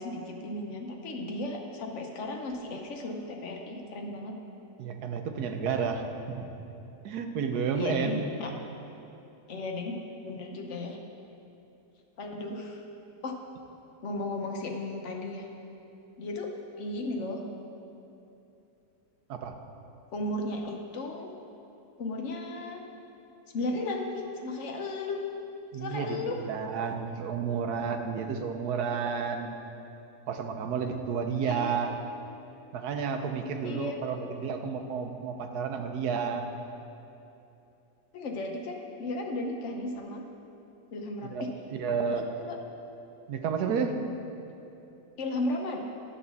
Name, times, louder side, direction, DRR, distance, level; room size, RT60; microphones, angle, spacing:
voice 1, 0.0-4.4 7.8-8.5 9.5-11.0 12.2-12.8 13.2-13.3 14.0-15.5 16.2-16.5 16.8-17.4 20.1-21.3 22.0-22.8 23.5-25.2 25.8-26.4 31.5-31.7 33.6-34.0 38.1-40.2 40.9-41.5 42.2-42.6 45.2-45.8, left 2 dB, 55° left, 2 dB, 1.2 m, -35 dB
voice 2, 4.8-6.4 7.0-8.3 19.3-19.5 25.7-29.5 30.3-31.9 32.7-36.4 41.3-42.3 43.3-44.0, right 6 dB, 85° right, 5 dB, 1.3 m, -31 dB
11.5 x 4.2 x 6.9 m, 2.8 s
omnidirectional pair, 1.6 m